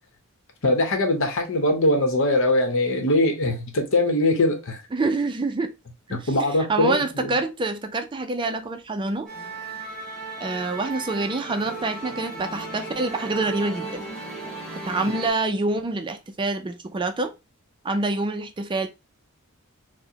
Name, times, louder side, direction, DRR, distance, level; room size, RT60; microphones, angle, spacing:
voice 1, 0.6-4.8 6.1-7.3, left 1 dB, 65° left, 0.9 m, -22 dB
voice 2, 4.9-5.7 6.1-9.3 10.4-14.1 14.8-17.3 17.8-18.9, right 3 dB, 20° right, 0.4 m, -26 dB
Musical instrument, 9.3-15.3, right 2 dB, 5° left, 1.5 m, -35 dB
4.6 x 2.1 x 2.7 m
head